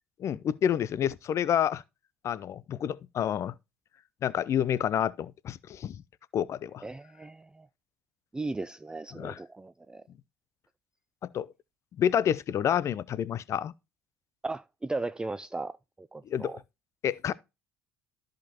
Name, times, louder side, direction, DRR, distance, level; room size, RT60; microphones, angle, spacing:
voice 1, 0.2-1.8 2.2-3.5 4.2-6.0 6.3-6.8 9.1-9.4 11.2-11.5 12.0-13.7 16.3-16.5 17.0-17.3, left 9 dB, 45° left, 0.6 m, -28 dB
voice 2, 6.8-7.7 8.3-10.0 14.4-16.6, right 2 dB, 10° right, 0.4 m, -37 dB
13.5 x 5.2 x 2.9 m
hypercardioid pair, 60°, 7 cm